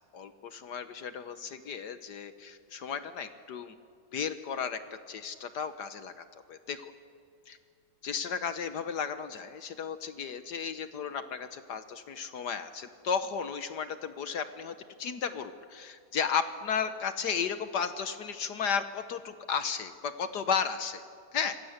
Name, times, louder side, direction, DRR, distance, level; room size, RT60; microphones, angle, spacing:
voice 1, 0.1-3.7 4.1-4.8 5.1-6.9 7.5-7.6 8.0-21.0 21.3-21.6, left 6 dB, 65° left, 10 dB, 1.5 m, -34 dB
26.5 x 21.5 x 8.0 m, 2.4 s
omnidirectional pair, 2.0 m